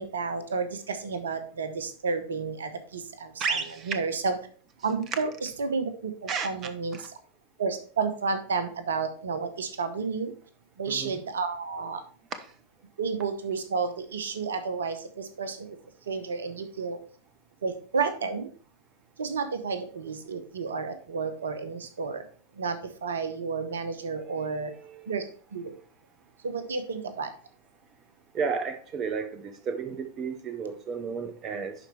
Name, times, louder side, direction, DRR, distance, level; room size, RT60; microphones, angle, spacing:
voice 1, 0.0-2.7 3.9-4.3 4.8-5.9 6.4-7.0 7.6-10.3 10.8-12.0 13.0-15.0 15.4-15.6 16.1-17.0 17.6-18.5 19.2-22.2 22.6-22.8 23.0-24.7 25.1-25.2 25.5-25.6 26.4-27.3, right 5 dB, 65° right, 0.9 m, -31 dB
voice 2, 3.4-4.0 6.3-6.5 6.9-7.1 10.9-11.1 24.5-25.2 28.3-31.7, right 5 dB, 30° right, 0.7 m, -32 dB
11.0 x 4.4 x 3.3 m
figure-of-eight pair, 90°, 0 cm